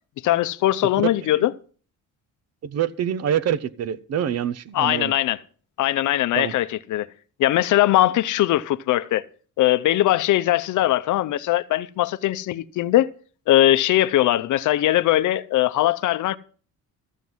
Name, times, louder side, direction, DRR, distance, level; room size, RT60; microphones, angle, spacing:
voice 1, 0.2-1.5 4.7-5.4 5.8-7.1 7.4-9.2 9.6-13.1 13.5-16.4, left 14 dB, 65° left, 0.6 m, -20 dB
voice 2, 1.0-1.5 2.6-5.1 6.3-6.5, right 9 dB, 50° right, 0.7 m, -26 dB
13.5 x 7.7 x 5.5 m
cardioid pair, 145°, 32 cm